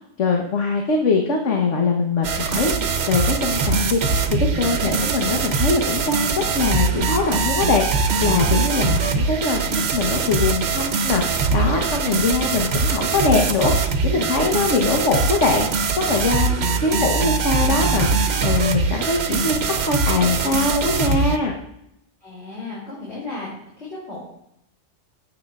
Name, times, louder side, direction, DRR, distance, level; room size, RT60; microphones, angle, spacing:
voice 1, 0.2-15.7 15.9-21.5, left 4 dB, 75° left, 1 dB, 1.4 m, -22 dB
sound 1, 2.2-21.4, right 4 dB, 65° right, 1.0 m, -22 dB
voice 2, 22.2-23.5 23.8-24.2, left 3 dB, 60° left, -7 dB, 3.3 m, -34 dB
17.0 x 7.5 x 2.4 m, 0.80 s
omnidirectional pair, 1.2 m